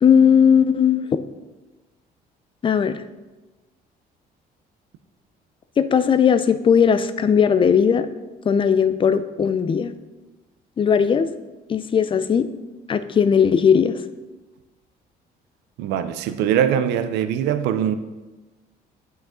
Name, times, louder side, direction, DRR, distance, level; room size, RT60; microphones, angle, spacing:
voice 1, 0.0-1.1 2.6-2.9 5.8-8.1 8.4-9.9 10.8-11.3 11.7-12.5 12.9-14.0, left 7 dB, 30° left, 11 dB, 0.5 m, -17 dB
voice 2, 15.8-17.9, right 9 dB, 90° right, 11 dB, 0.6 m, -22 dB
9.5 x 5.2 x 3.8 m, 1.1 s
cardioid pair, 110°, 17 cm